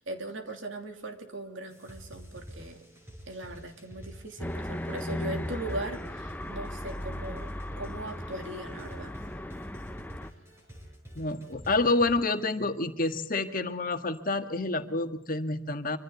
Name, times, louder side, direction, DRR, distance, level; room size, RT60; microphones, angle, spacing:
voice 1, 0.0-2.8 3.3-9.2, right 2 dB, 65° right, 5 dB, 3.2 m, -39 dB
sound 1, 1.7-12.1, equal, 15° right, 6.7 m, -47 dB
sound 2, 4.4-10.3, left 1 dB, 10° left, 0.7 m, -37 dB
voice 2, 11.1-16.0, left 2 dB, 45° left, 7 dB, 1.7 m, -28 dB
26.0 x 25.5 x 4.1 m, 0.83 s
head